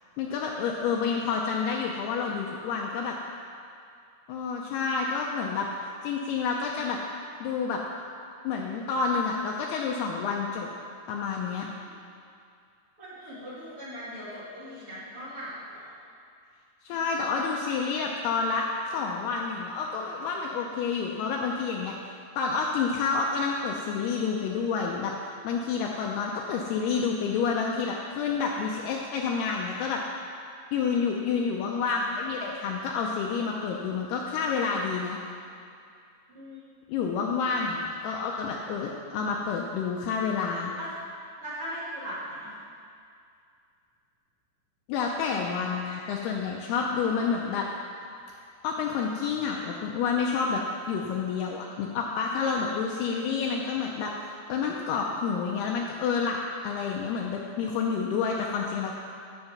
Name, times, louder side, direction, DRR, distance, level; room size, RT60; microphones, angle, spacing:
voice 1, 0.2-3.2 4.3-5.7 6.0-7.0 7.4-7.8 8.4-10.7 11.1-11.7 16.8-21.9 22.4-25.1 25.4-30.0 30.7-35.2 36.9-40.7 44.9-47.7 48.6-50.6 50.9-56.4 56.6-58.9, left 5 dB, 85° left, 0 dB, 2.4 m, -29 dB
voice 2, 13.0-15.8 16.9-17.1 36.3-36.6 40.8-40.9 41.4-42.5 53.2-54.0, equal, 40° right, -10 dB, 2.6 m, -40 dB
13.0 x 4.8 x 5.5 m, 2.4 s
omnidirectional pair, 5.1 m